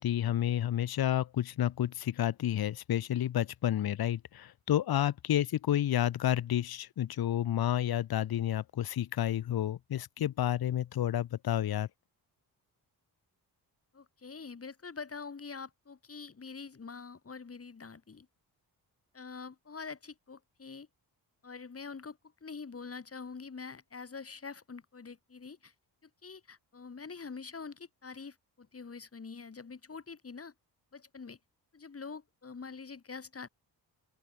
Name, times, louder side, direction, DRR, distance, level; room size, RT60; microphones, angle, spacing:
voice 1, 0.0-11.9, left 11 dB, 60° left, 0.9 m, -30 dB
voice 2, 13.9-18.3 19.1-20.9 21.4-25.7 26.0-30.5 30.9-31.4 31.7-33.5, left 5 dB, 35° left, 2.7 m, -45 dB
open air
cardioid pair, 90°, 41 cm